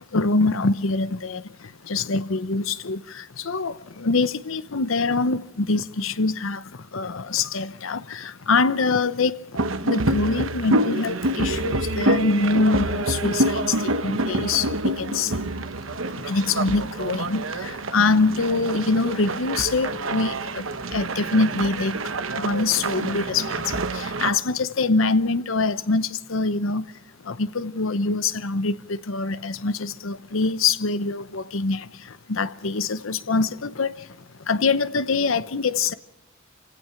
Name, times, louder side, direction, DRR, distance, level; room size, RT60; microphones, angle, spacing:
voice 1, 0.1-1.4 1.9-6.6 6.9-9.4 9.8-15.5 16.2-20.6 20.9-22.0 22.3-26.8 27.3-31.9 32.3-33.9 34.5-35.9, left 3 dB, 75° left, 0.9 m, -24 dB
sound 1, 9.6-24.3, right 2 dB, 75° right, 1.1 m, -27 dB
28.5 x 16.5 x 5.8 m
head